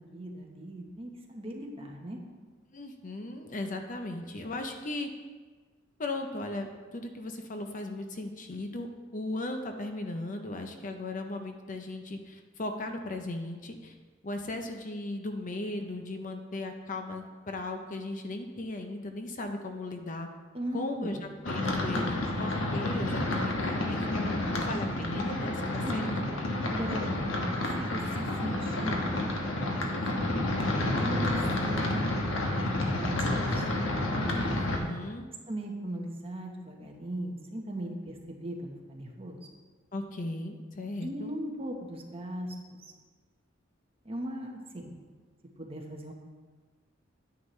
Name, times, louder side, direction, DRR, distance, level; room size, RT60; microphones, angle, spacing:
voice 1, 0.0-2.2 20.5-21.2 25.8-26.3 26.7-27.4 27.8-30.1 31.0-32.1 32.5-33.7 35.5-39.4 41.0-42.8 44.0-44.9 45.6-46.1, right 1 dB, 30° right, 0 dB, 1.2 m, -38 dB
voice 2, 2.7-5.1 6.0-13.9 14.2-20.3 20.7-26.0 34.1-35.3 39.9-41.3, left 2 dB, 40° left, 5 dB, 0.7 m, -37 dB
sound 1, 21.4-34.8, left 1 dB, 80° left, 1.3 m, -30 dB
9.5 x 9.2 x 3.2 m, 1.4 s
head